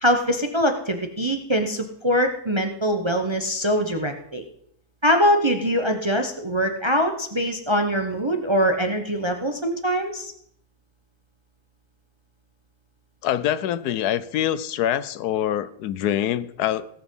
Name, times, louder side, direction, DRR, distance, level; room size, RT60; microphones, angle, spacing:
voice 1, 0.0-4.4 5.0-10.3, equal, 25° right, 5 dB, 0.7 m, -23 dB
voice 2, 13.2-16.9, left 11 dB, 80° left, 16 dB, 1.2 m, -25 dB
17.5 x 6.1 x 5.5 m, 0.68 s
omnidirectional pair, 1.7 m